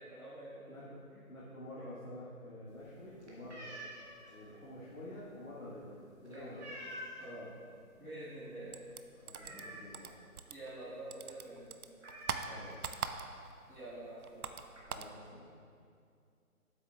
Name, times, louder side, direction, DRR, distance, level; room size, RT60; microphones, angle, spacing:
voice 1, 0.0-0.8 1.1-1.2 1.7-1.8 6.2-6.6 7.2-7.4 8.0-8.7 9.4-9.7 10.5-11.8 13.7-14.5, right 1 dB, 5° right, -30 dB, 1.7 m, -48 dB
voice 2, 0.7-1.0 1.3-3.7 4.3-6.7 7.3-7.6 9.2-10.1 12.3-13.1 14.9-15.5, left 1 dB, 65° left, -8 dB, 1.8 m, -49 dB
sound 1, 2.7-7.4 7.8-8.1 8.4-8.5 8.9-10.2 10.6-10.7 11.0-11.2 11.5-11.6 12.0-13.2 14.0-14.1 14.4-14.8, equal, 50° right, 1.7 m, -49 dB
sound 2, 8.7-10.8 11.1-13.6 13.9-15.2, right 6 dB, 80° right, 0.6 m, -41 dB
9.4 x 8.2 x 2.4 m, 2.4 s
figure-of-eight pair, 175°, 44 cm